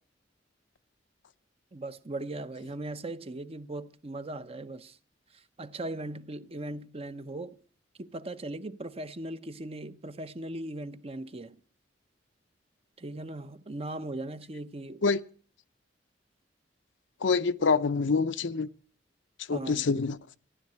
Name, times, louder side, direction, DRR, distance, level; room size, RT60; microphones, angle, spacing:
voice 1, 1.7-5.0 5.3-7.6 8.0-11.6 13.0-15.0 19.5-19.9, right 2 dB, 30° right, 0.8 m, -39 dB
voice 2, 17.2-18.7 19.5-20.2, left 4 dB, 70° left, 0.6 m, -26 dB
15.0 x 10.5 x 7.7 m
head